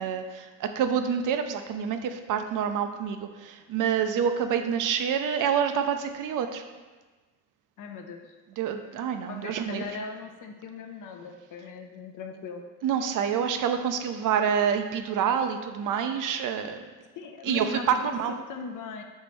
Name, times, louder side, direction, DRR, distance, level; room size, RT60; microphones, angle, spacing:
voice 1, 0.0-6.6 8.6-9.9 12.8-16.8 17.4-18.3, right 7 dB, 50° right, 7 dB, 0.5 m, -27 dB
voice 2, 7.8-8.3 9.3-12.6 17.2-19.0, left 4 dB, 50° left, 5 dB, 0.6 m, -39 dB
4.4 x 2.9 x 3.3 m, 1.3 s
supercardioid pair, 60°, 40 cm